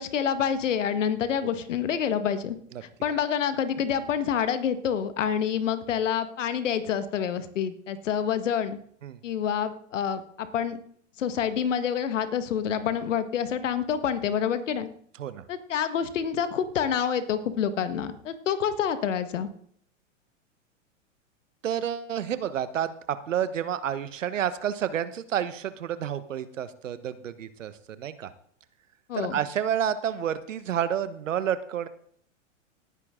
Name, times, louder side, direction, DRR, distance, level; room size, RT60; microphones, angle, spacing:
voice 1, 0.0-2.6 2.8-8.8 9.2-10.8 11.2-14.9 15.5-19.5 29.1-29.4, left 8 dB, 75° left, 11 dB, 1.6 m, -27 dB
voice 2, 21.6-27.7 28.0-28.3 29.1-31.9, right 9 dB, 80° right, 14 dB, 1.2 m, -30 dB
18.5 x 9.6 x 3.8 m, 0.63 s
hypercardioid pair, 110°, 37 cm